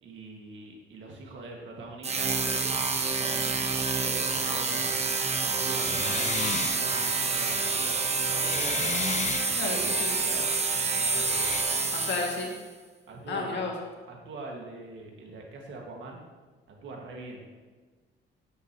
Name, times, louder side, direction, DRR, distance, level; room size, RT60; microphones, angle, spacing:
voice 1, 0.0-2.7 3.1-4.9 5.3-8.0 8.3-9.4 9.7-9.9 10.2-10.5 10.8-12.0 13.1-13.7 14.1-16.2 16.7-17.5, right 3 dB, 70° right, 0 dB, 2.0 m, -43 dB
sound 1, 2.0-12.6, right 4 dB, 35° right, 1.0 m, -28 dB
sound 2, 4.3-5.0 5.7-10.7 11.3-11.6, left 6 dB, 35° left, 0.5 m, -36 dB
voice 2, 9.6-10.1 11.9-12.5 13.3-13.7, left 4 dB, 65° left, -1 dB, 2.2 m, -32 dB
11.0 x 8.1 x 3.0 m, 1.4 s
cardioid pair, 90°, 20 cm